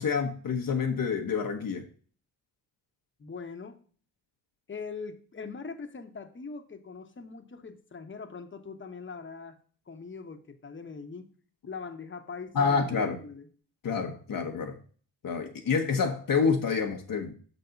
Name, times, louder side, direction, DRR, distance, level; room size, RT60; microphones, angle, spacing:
voice 1, 0.0-1.9 12.5-13.2 13.8-14.8 15.2-17.3, left 5 dB, 45° left, 1.0 m, -28 dB
voice 2, 3.2-3.8 4.7-9.6 9.9-11.3 11.7-12.9 13.2-13.5, left 5 dB, 25° left, 1.1 m, -41 dB
6.3 x 4.0 x 5.7 m
supercardioid pair, 60°, 45 cm